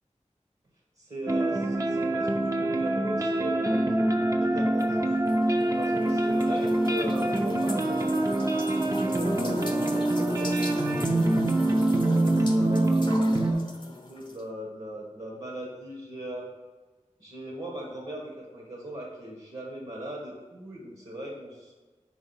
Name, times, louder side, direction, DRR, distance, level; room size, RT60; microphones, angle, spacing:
voice 1, 1.0-3.8 4.4-5.1 5.7-8.0 8.9-10.5 11.9-13.6 13.9-16.5 17.2-21.7, right 1 dB, 55° right, -2 dB, 1.3 m, -39 dB
sound 1, 1.3-13.5, right 1 dB, 25° right, 0.6 m, -25 dB
sound 2, 4.8-14.4, left 2 dB, 40° left, 0.7 m, -40 dB
4.8 x 3.8 x 5.5 m, 1.3 s
wide cardioid pair, 40°, 13 cm